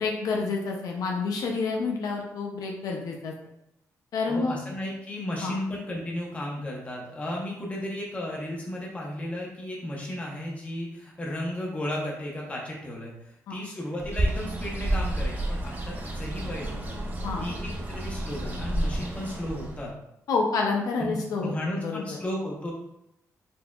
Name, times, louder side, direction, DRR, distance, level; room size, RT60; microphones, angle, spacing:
voice 1, 0.0-3.3 4.1-4.6 5.4-5.5 13.5-13.6 17.2-17.4 20.3-21.5 21.8-22.0, left 4 dB, 75° left, 0 dB, 0.5 m, -28 dB
voice 2, 4.3-17.0 17.4-19.9 21.0-22.7, left 1 dB, 20° left, -3 dB, 0.9 m, -34 dB
Bird, 14.0-19.9, right 1 dB, 30° right, 0.5 m, -30 dB
4.3 x 2.7 x 2.3 m, 0.81 s
cardioid pair, 130°, 6 cm